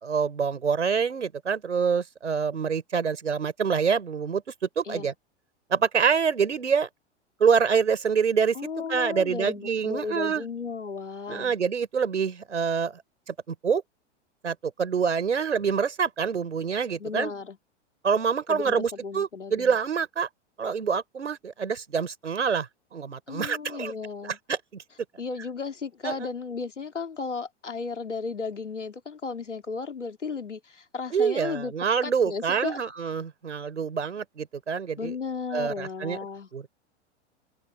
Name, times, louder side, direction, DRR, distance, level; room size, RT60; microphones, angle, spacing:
voice 1, 0.0-4.4 4.8-5.1 5.7-6.9 7.4-8.5 8.9-10.4 11.3-13.0 13.3-13.8 14.4-17.3 18.0-20.3 20.6-23.9 24.5-24.8 26.0-26.3 31.1-35.1 35.5-36.2 36.5-36.7, right 6 dB, 80° right, 4.9 m, -26 dB
voice 2, 8.5-11.6 17.0-17.6 18.5-19.8 23.3-24.4 25.2-31.7 32.0-32.8 35.0-36.5, left 4 dB, 85° left, 2.5 m, -34 dB
figure-of-eight pair, 95°, 35 cm